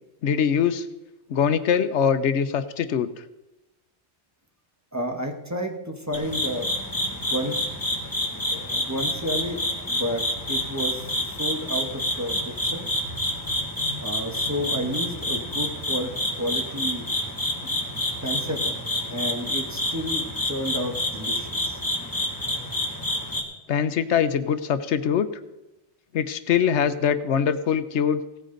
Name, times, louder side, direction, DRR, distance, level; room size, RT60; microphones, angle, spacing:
voice 1, 0.2-0.9 1.3-3.1 8.5-8.9 11.9-12.0 18.4-18.6 23.7-25.3 26.1-28.2, left 7 dB, 85° left, 12 dB, 1.0 m, -23 dB
voice 2, 4.9-6.7 7.2-7.6 8.8-12.9 14.0-16.1 16.4-17.1 17.6-17.8 18.2-18.8 19.1-21.8, equal, 15° right, 3 dB, 1.2 m, -31 dB
sound 1, 6.1-23.4, left 1 dB, 15° left, 1.7 m, -28 dB
17.0 x 9.4 x 3.9 m, 1.0 s
omnidirectional pair, 1.2 m